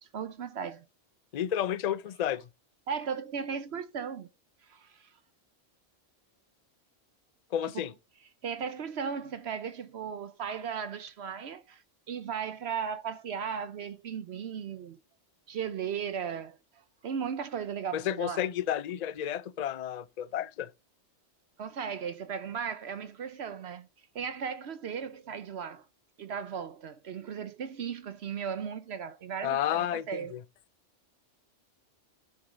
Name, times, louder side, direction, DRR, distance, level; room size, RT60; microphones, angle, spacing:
voice 1, 0.0-0.9 2.9-4.3 4.7-5.1 7.7-7.9 8.4-15.0 15.5-16.6 17.0-18.5 21.6-23.9 24.1-25.9 26.2-30.3, right 7 dB, 60° right, 0.9 m, -36 dB
voice 2, 1.3-2.4 7.5-7.9 17.9-20.7 29.4-30.4, left 10 dB, 50° left, 0.5 m, -31 dB
12.5 x 6.8 x 4.0 m
omnidirectional pair, 1.3 m